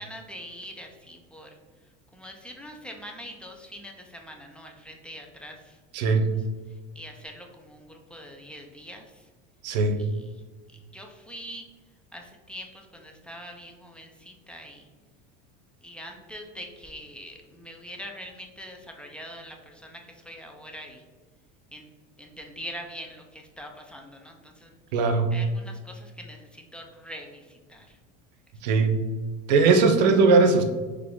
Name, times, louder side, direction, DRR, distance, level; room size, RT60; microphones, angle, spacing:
voice 1, 0.0-1.6 2.1-5.8 6.7-9.3 10.0-10.4 10.7-11.7 12.1-14.9 15.8-21.0 21.7-21.9 22.2-24.8 25.3-28.0, equal, 5° left, 2 dB, 0.5 m, -43 dB
voice 2, 5.9-6.3 9.6-10.0 24.9-25.3 28.6-29.0 29.5-30.6, right 4 dB, 80° right, 6 dB, 0.7 m, -19 dB
3.8 x 3.4 x 3.6 m, 1.3 s
supercardioid pair, 120°, 21 cm